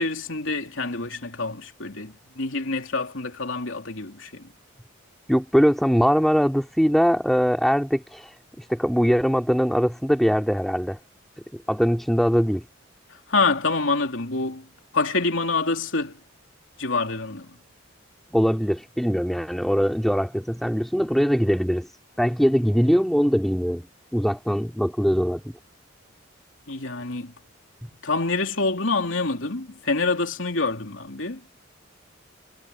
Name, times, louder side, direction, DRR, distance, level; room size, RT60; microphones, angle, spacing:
voice 1, 0.0-4.5 13.3-14.6 14.9-16.2 16.8-17.5 26.7-27.3 28.0-31.4, left 3 dB, 75° left, 3.2 m, -26 dB
voice 2, 5.3-11.0 11.5-12.6 18.3-21.9 22.2-23.9 24.1-25.5, equal, ahead, 3.0 m, -22 dB
head